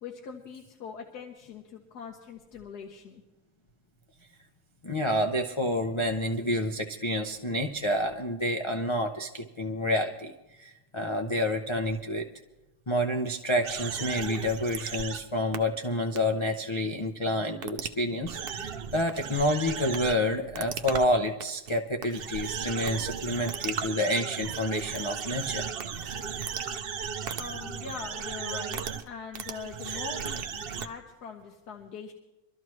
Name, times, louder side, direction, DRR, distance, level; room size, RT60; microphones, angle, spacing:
voice 1, 0.0-3.2 27.4-32.1, left 6 dB, 80° left, 2 dB, 1.6 m, -42 dB
voice 2, 4.8-10.3 10.6-12.3 12.9-25.7, left 1 dB, 50° left, 3 dB, 0.3 m, -29 dB
sound 1, 13.6-15.2 15.5-15.6 16.2-16.3 17.6-17.9 18.2-20.1 20.6-21.1 21.4-21.7 22.0-29.1 29.3-30.9, right 7 dB, 60° right, 0.6 m, -35 dB
24.5 x 13.0 x 3.1 m, 1.0 s
omnidirectional pair, 1.6 m